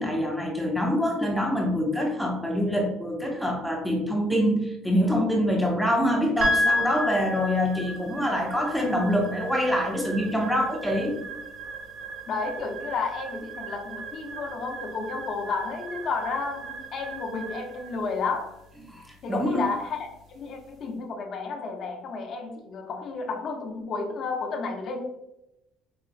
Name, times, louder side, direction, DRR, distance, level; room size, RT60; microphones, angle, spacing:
voice 1, 0.0-11.2 18.9-19.7, equal, ahead, 0 dB, 0.6 m, -25 dB
sound 1, 6.4-20.8, equal, 60° right, 1.0 m, -34 dB
voice 2, 12.3-18.6 19.2-25.1, left 4 dB, 50° left, 3 dB, 0.7 m, -32 dB
4.9 x 2.3 x 2.5 m, 0.87 s
cardioid pair, 125°, 0 cm